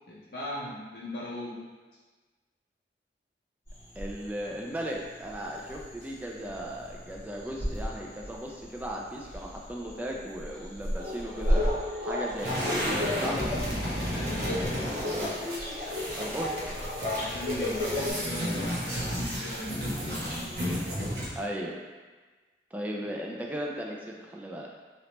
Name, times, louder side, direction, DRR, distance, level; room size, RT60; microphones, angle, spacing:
voice 1, 0.1-1.6 14.1-14.9 17.2-20.0, left 1 dB, 60° left, -5 dB, 0.5 m, -38 dB
sound 1, 3.7-21.1, equal, 15° left, 1.4 m, -38 dB
voice 2, 4.0-11.6 12.0-13.5 16.2-16.5 21.4-21.8 22.7-24.7, equal, 10° right, -2 dB, 0.3 m, -36 dB
sound 2, 11.0-18.1, left 2 dB, 45° right, 1.2 m, -34 dB
sound 3, 12.4-21.4, equal, 75° right, 0.9 m, -33 dB
3.2 x 2.9 x 2.9 m, 1.3 s
head